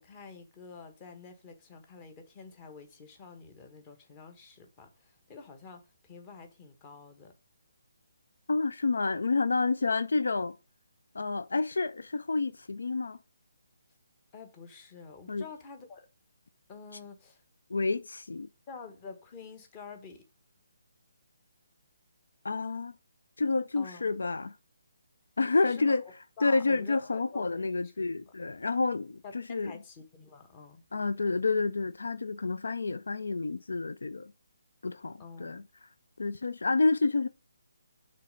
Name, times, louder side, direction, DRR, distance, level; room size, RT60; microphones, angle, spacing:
voice 1, 0.0-7.3 14.3-16.1 16.7-17.4 18.7-20.2 23.8-24.1 25.7-28.3 29.2-30.8 35.2-35.6, left 5 dB, 25° left, 1.2 m, -48 dB
voice 2, 8.5-10.5 11.1-13.2 15.3-15.5 17.7-18.5 22.4-22.9 23.4-24.6 25.4-26.0 26.4-29.7 30.9-34.3 34.8-35.6 36.2-37.3, left 3 dB, 75° left, 0.4 m, -29 dB
6.6 x 3.3 x 5.2 m
figure-of-eight pair, 150°, 0 cm